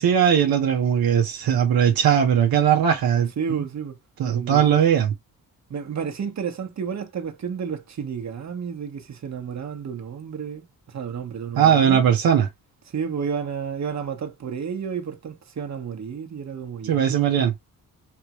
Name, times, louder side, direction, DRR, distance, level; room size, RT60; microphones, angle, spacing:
voice 1, 0.0-3.7 4.2-5.1 11.6-12.5 16.8-17.5, right 8 dB, 85° right, 1.0 m, -19 dB
voice 2, 3.4-4.8 5.7-12.0 12.9-17.4, right 7 dB, 50° right, 1.2 m, -31 dB
3.6 x 3.4 x 3.0 m
cardioid pair, 70°, 35 cm